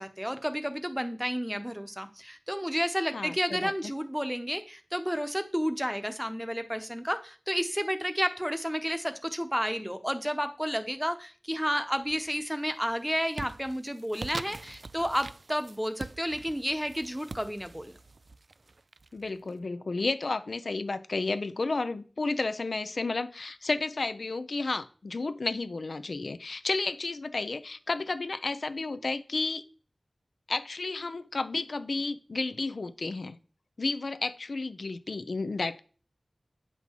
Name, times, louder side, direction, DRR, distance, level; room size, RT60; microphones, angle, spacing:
voice 1, 0.0-17.9, equal, 5° right, 9 dB, 0.9 m, -31 dB
voice 2, 3.1-3.9 19.1-29.6 30.5-33.4 33.8-35.8, left 3 dB, 75° left, 11 dB, 0.6 m, -32 dB
sound 1, 12.0-12.5 12.9-19.5, right 3 dB, 65° right, 0.3 m, -44 dB
8.3 x 5.7 x 4.5 m, 0.39 s
wide cardioid pair, 60°, 0 cm